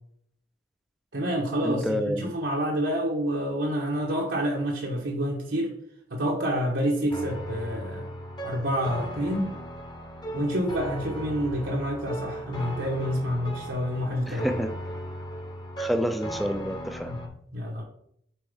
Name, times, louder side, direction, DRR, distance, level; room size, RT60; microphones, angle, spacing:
voice 1, 1.1-5.7 6.1-9.6 10.3-14.5 17.1-17.8, equal, 80° right, -2 dB, 1.2 m, -28 dB
voice 2, 1.6-2.3 14.3-14.7 15.8-17.1, equal, ahead, 8 dB, 0.4 m, -28 dB
sound 1, 7.1-17.3, right 1 dB, 25° left, 0.9 m, -37 dB
7.6 x 4.4 x 3.6 m, 0.70 s
head